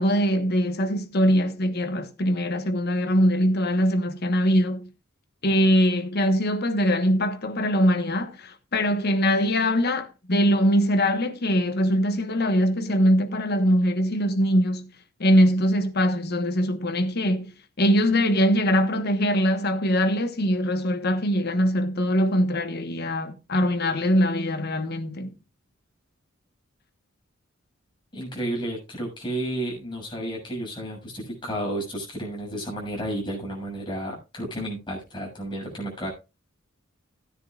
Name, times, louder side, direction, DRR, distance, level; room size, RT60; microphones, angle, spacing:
voice 1, 0.0-4.9 5.4-14.9 15.2-17.5 17.8-25.3, equal, 50° left, 1.3 m, -22 dB
voice 2, 28.1-36.1, right 1 dB, 25° left, 6.8 m, -32 dB
16.5 x 9.7 x 2.5 m
head